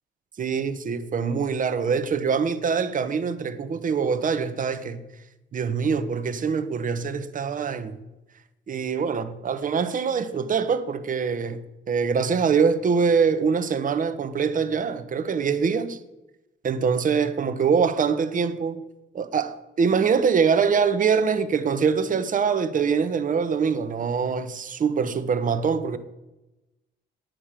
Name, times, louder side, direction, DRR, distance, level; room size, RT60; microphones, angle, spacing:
voice 1, 0.4-5.0 5.5-8.0 8.7-11.6 11.9-16.0 16.6-18.8 19.1-26.0, right 6 dB, 40° right, 0.9 m, -24 dB
9.8 x 7.5 x 4.9 m
cardioid pair, 90°, 20 cm